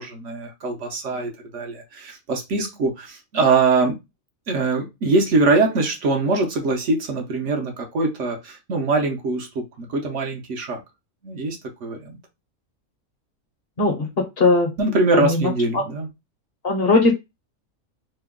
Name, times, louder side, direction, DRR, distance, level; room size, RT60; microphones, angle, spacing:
voice 1, 0.0-4.0 4.5-10.8 11.2-12.2 14.8-16.1, right 3 dB, 65° right, 2 dB, 1.1 m, -23 dB
voice 2, 13.8-14.7 15.1-15.5 16.6-17.1, left 3 dB, 50° left, 4 dB, 0.9 m, -19 dB
3.0 x 2.2 x 3.5 m, 0.22 s
omnidirectional pair, 1.4 m